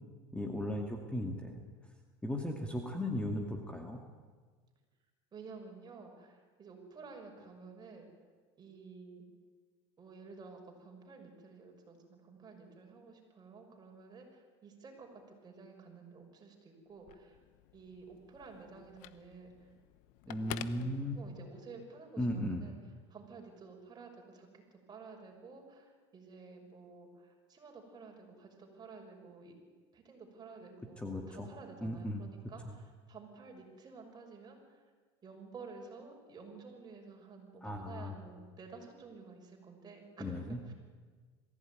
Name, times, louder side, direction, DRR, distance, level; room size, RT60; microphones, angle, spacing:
voice 1, 0.3-1.6 2.2-4.0 20.3-21.2 22.2-22.6 31.0-31.5 31.8-32.2 37.6-38.1 40.2-40.6, left 1 dB, 10° left, 3 dB, 2.4 m, -36 dB
voice 2, 5.3-8.1 8.6-9.2 10.0-17.4 17.7-19.7 20.3-22.8 23.1-29.5 29.9-34.8 35.2-40.7, right 4 dB, 30° right, 2 dB, 6.2 m, -52 dB
Telephone, 16.9-21.7, left 15 dB, 65° left, 1.0 m, -50 dB
22.0 x 16.0 x 9.6 m, 1.5 s
supercardioid pair, 100°, 14 cm